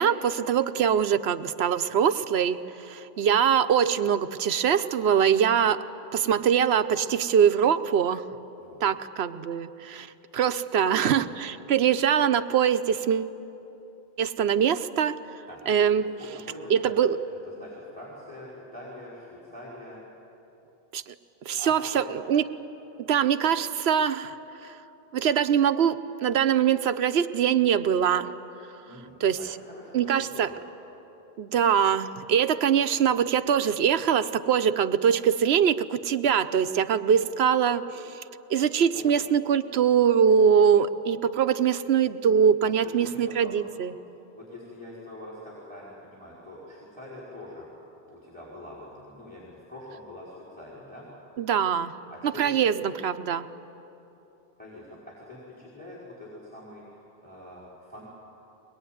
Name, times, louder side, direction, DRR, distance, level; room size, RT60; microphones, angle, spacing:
voice 1, 0.0-2.6 2.9-5.8 6.1-8.2 8.8-10.1 10.3-13.3 14.2-15.1 15.7-16.1 16.7-17.2 20.9-21.1 21.5-22.4 23.0-24.3 25.1-26.0 26.2-28.3 29.2-29.4 29.9-30.5 31.4-38.2 38.5-43.9 51.4-51.9 52.4-53.5, right 8 dB, 90° right, 11 dB, 1.0 m, -23 dB
voice 2, 8.6-8.9 15.5-15.6 15.9-16.9 17.3-20.0 21.5-22.2 28.8-30.6 38.9-39.3 42.8-43.5 44.3-47.7 48.0-51.1 52.1-53.0 54.6-58.1, left 1 dB, 10° left, -6 dB, 4.8 m, -44 dB
23.0 x 21.0 x 9.3 m, 3.0 s
omnidirectional pair, 1.0 m